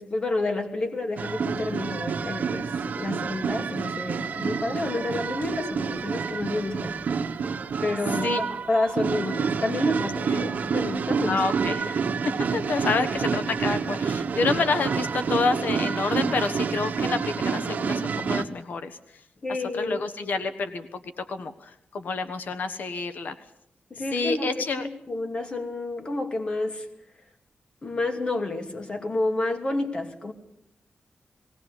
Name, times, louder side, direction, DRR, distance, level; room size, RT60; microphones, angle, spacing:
voice 1, 0.0-7.0 7.8-11.4 19.4-20.0 23.9-26.9 27.8-30.3, left 2 dB, 35° left, 4 dB, 2.7 m, -29 dB
sound 1, 1.2-18.4, right 5 dB, 70° right, 1.3 m, -28 dB
voice 2, 11.3-12.0 12.2-19.0 19.7-23.4 24.1-24.9, left 4 dB, 90° left, 9 dB, 1.3 m, -28 dB
20.0 x 18.0 x 8.3 m, 0.74 s
wide cardioid pair, 180°, 3 cm